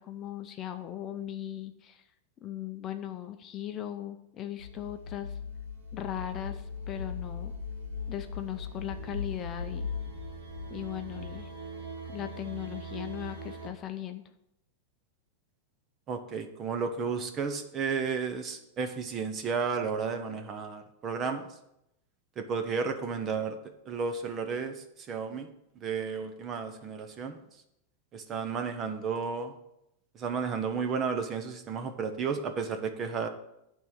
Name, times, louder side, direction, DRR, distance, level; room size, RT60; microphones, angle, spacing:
voice 1, 0.0-2.0 2.4-5.4 5.9-7.5 8.1-9.9 10.7-11.5 12.1-14.2, left 11 dB, 30° left, 7 dB, 0.6 m, -38 dB
sound 1, 4.6-13.7, left 3 dB, 75° right, 2.0 m, -39 dB
voice 2, 16.1-21.5 22.4-23.6 23.9-25.5 25.8-27.4 28.1-29.5 30.1-33.3, right 5 dB, 25° right, 7 dB, 0.8 m, -33 dB
9.3 x 3.7 x 7.0 m, 0.84 s
supercardioid pair, 150°, 0 cm